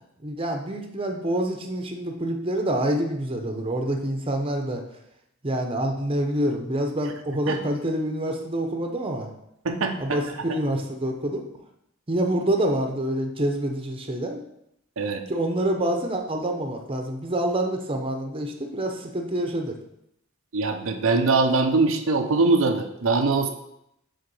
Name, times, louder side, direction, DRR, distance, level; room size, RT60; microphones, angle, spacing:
voice 1, 0.2-4.8 5.4-9.3 10.0-11.4 12.1-14.4 15.3-19.7, right 1 dB, 25° right, 3 dB, 0.9 m, -27 dB
voice 2, 9.6-10.2 15.0-15.2 20.5-23.5, right 3 dB, 85° right, 4 dB, 0.7 m, -22 dB
6.8 x 3.9 x 5.4 m, 0.80 s
head